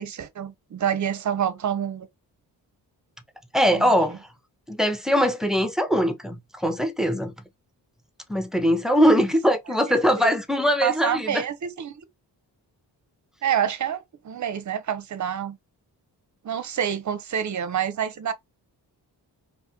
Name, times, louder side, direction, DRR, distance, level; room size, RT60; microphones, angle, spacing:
voice 1, 0.0-2.1 3.7-3.9 10.8-12.0 13.4-15.6 16.4-18.3, right 9 dB, 45° right, 0.6 m, -27 dB
voice 2, 3.5-4.2 4.7-7.3 8.3-11.4, equal, ahead, 0.6 m, -21 dB
2.5 x 2.4 x 2.8 m
cardioid pair, 55°, 42 cm